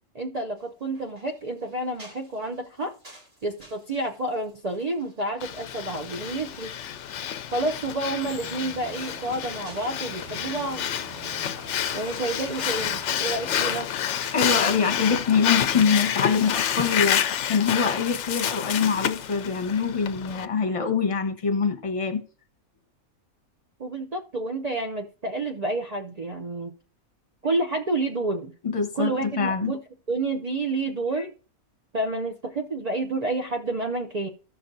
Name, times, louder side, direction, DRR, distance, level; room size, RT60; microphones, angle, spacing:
voice 1, 0.1-2.9 3.4-6.7 7.5-10.8 11.9-13.9 23.8-26.7 27.4-28.5 28.9-29.8 30.1-31.3 31.9-34.3, right 2 dB, 65° right, 0.4 m, -29 dB
sound 1, 0.6-14.8, right 1 dB, 40° right, 3.2 m, -54 dB
Breathing, 5.4-20.4, left 9 dB, 65° left, 0.8 m, -29 dB
sound 2, 8.3-13.8, right 11 dB, 85° right, 1.2 m, -46 dB
voice 2, 14.3-22.2 28.6-29.7, left 5 dB, 30° left, 0.8 m, -24 dB
15.0 x 5.9 x 2.6 m
omnidirectional pair, 1.5 m